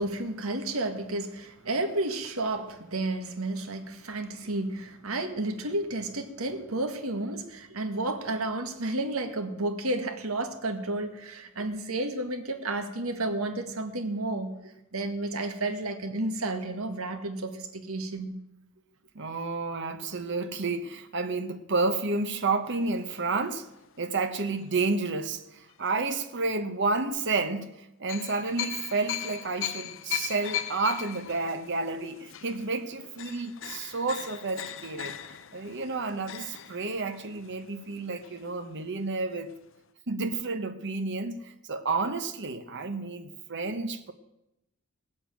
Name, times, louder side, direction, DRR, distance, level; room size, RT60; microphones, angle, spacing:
voice 1, 0.0-18.4, right 2 dB, 85° right, 1.8 m, -32 dB
voice 2, 19.1-23.7 24.0-35.2 35.5-39.5 40.1-44.1, right 3 dB, 55° right, 1.1 m, -30 dB
sound 1, 22.7-25.1 25.7-25.9 28.1-38.8 39.1-39.2 39.5-39.7, left 11 dB, 65° left, 0.7 m, -39 dB
17.5 x 7.8 x 9.0 m
head